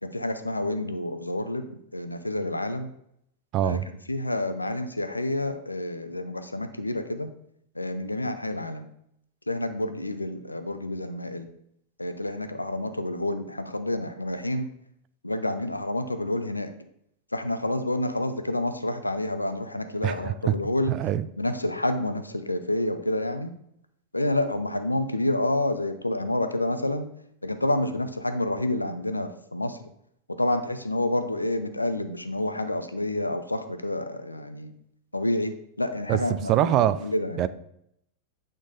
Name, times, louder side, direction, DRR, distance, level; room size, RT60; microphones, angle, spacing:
voice 1, 0.0-2.9 3.6-3.8 4.1-7.3 7.7-8.9 9.5-11.5 12.0-14.7 15.2-16.7 17.3-20.9 21.4-23.5 24.1-27.1 27.4-29.9 30.3-34.7 35.1-37.5, left 1 dB, 85° left, 9 dB, 0.5 m, -29 dB
voice 2, 3.5-3.9 20.0-20.6 20.9-21.3 36.1-37.1 37.4-37.5, right 12 dB, 35° right, 14 dB, 0.3 m, -24 dB
8.6 x 3.8 x 3.9 m, 0.74 s
figure-of-eight pair, 90°, 0 cm